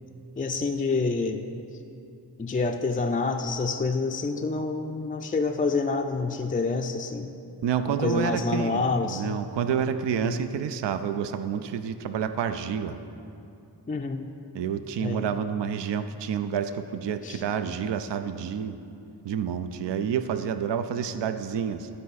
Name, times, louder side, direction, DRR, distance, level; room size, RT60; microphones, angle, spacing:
voice 1, 0.4-1.5 2.4-7.3 7.9-9.4 10.2-10.4 13.9-14.3 15.0-15.3 17.2-17.4, left 3 dB, 20° left, 3 dB, 0.4 m, -27 dB
voice 2, 7.6-13.0 14.5-18.8 19.2-21.9, right 8 dB, 75° right, 10 dB, 0.5 m, -29 dB
11.5 x 4.7 x 4.1 m, 2.6 s
cardioid pair, 40°, 44 cm